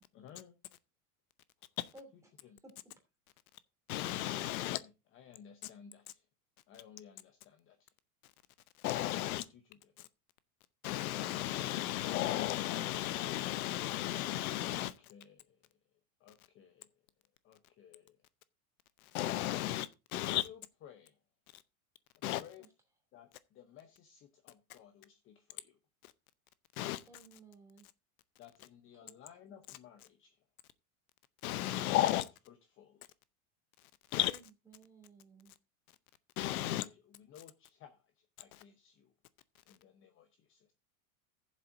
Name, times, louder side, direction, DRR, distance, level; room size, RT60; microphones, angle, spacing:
voice 1, 0.1-0.6 1.6-1.7 2.5-2.6 4.5-6.3 6.7-7.9 9.2-9.9 14.8-15.6 16.2-16.9 17.4-18.2 20.2-21.2 22.4-22.7 23.1-25.8 28.4-30.4 32.5-33.1 36.6-39.1 39.7-40.7, left 8 dB, 30° left, 0.8 m, -57 dB
voice 2, 3.9-4.8 8.8-9.4 10.8-14.9 19.1-19.9 20.1-20.4 22.2-22.4 26.8-27.0 31.4-32.3 34.1-34.3 36.4-36.8, left 15 dB, 80° left, 0.7 m, -33 dB
voice 3, 27.1-27.9 29.0-29.1 34.3-35.5, right 3 dB, 5° right, 2.7 m, -57 dB
15.0 x 7.4 x 2.6 m
supercardioid pair, 145°, 43 cm